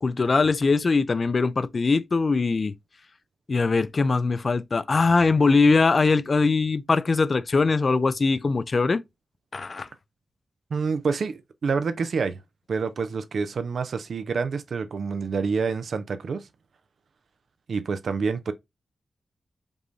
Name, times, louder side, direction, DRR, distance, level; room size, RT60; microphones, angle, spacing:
voice 1, 0.0-2.7 3.5-9.0 9.5-9.9, left 4 dB, 50° left, 0.4 m, -21 dB
voice 2, 10.7-12.4 12.7-16.5 17.7-18.5, right 5 dB, 75° right, 0.5 m, -27 dB
5.2 x 2.6 x 3.2 m
cardioid pair, 75°, 0 cm